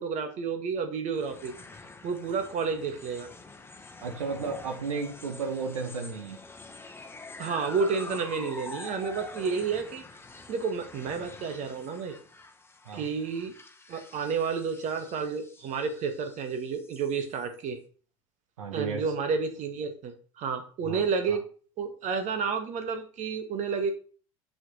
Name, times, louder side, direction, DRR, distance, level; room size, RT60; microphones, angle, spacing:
voice 1, 0.0-1.5 2.0-3.3 7.4-10.0 10.5-12.1 12.9-13.5 13.9-17.8 18.7-21.4 21.8-23.9, right 5 dB, 45° right, 7 dB, 1.8 m, -30 dB
sound 1, 1.1-17.6, left 3 dB, 15° left, 1.3 m, -46 dB
voice 2, 4.0-6.4 12.8-13.1 18.6-19.0 20.8-21.0 21.3-21.4, right 4 dB, 75° right, 5 dB, 1.5 m, -33 dB
7.3 x 6.4 x 5.6 m, 0.40 s
figure-of-eight pair, 75°, 17 cm